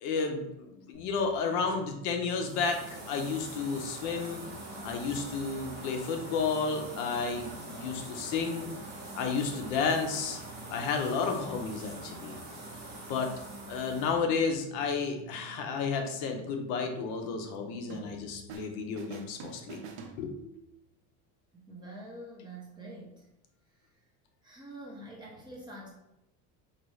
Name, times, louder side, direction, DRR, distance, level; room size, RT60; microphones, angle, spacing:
voice 1, 0.0-4.4 4.8-8.7 9.1-10.4 10.7-12.4 13.1-13.3 13.7-19.8 20.2-20.7, left 5 dB, 60° left, 4 dB, 0.6 m, -32 dB
sound 1, 0.9-18.6, right 3 dB, 20° left, 1.3 m, -52 dB
sound 2, 2.4-14.2, right 1 dB, 30° right, 0.9 m, -44 dB
sound 3, 17.9-18.7 19.0-20.7, right 5 dB, 80° right, 0.6 m, -46 dB
voice 2, 21.5-23.3 24.4-25.9, right 1 dB, 15° right, -4 dB, 0.4 m, -46 dB
4.0 x 2.3 x 3.1 m, 0.86 s
cardioid pair, 175°, 34 cm